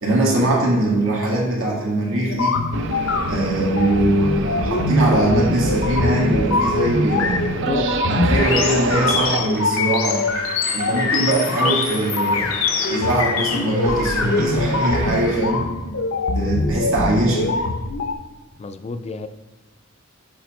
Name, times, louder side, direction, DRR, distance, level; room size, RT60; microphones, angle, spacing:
voice 1, 0.0-2.6 3.3-7.4 8.1-10.2 10.7-12.5 12.9-15.6 16.3-17.6, right 1 dB, 85° right, -3 dB, 1.8 m, -21 dB
sound 1, 2.3-18.1, left 3 dB, 80° left, 0.6 m, -23 dB
sound 2, 2.7-9.4, right 4 dB, 60° right, 0.5 m, -27 dB
voice 2, 7.7-8.0 18.6-19.3, left 3 dB, 30° left, 11 dB, 0.3 m, -29 dB
Train, 9.4-15.5, right 1 dB, 40° right, 1.3 m, -34 dB
7.1 x 4.9 x 3.1 m, 1.2 s
head